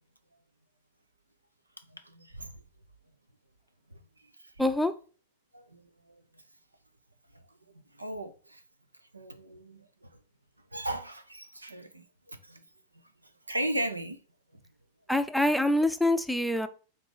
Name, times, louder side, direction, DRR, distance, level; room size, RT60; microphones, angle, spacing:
voice 1, 1.9-2.6 3.9-4.0 5.5-6.2 8.0-8.6 9.1-10.2 10.7-12.6 13.5-14.2, right 1 dB, 85° right, 0.7 m, -37 dB
voice 2, 4.6-4.9 15.1-16.7, left 1 dB, ahead, 0.6 m, -25 dB
6.0 x 4.0 x 4.8 m
figure-of-eight pair, 90°, 0 cm